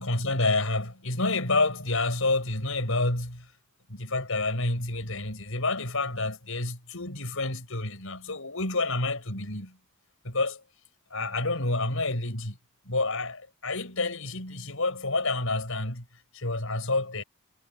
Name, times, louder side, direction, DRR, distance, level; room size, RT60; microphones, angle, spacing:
voice 1, 0.0-3.5 3.9-9.8 10.2-10.6 11.1-12.6 12.9-16.0 16.3-17.2, left 2 dB, 65° left, 7.8 m, -29 dB
head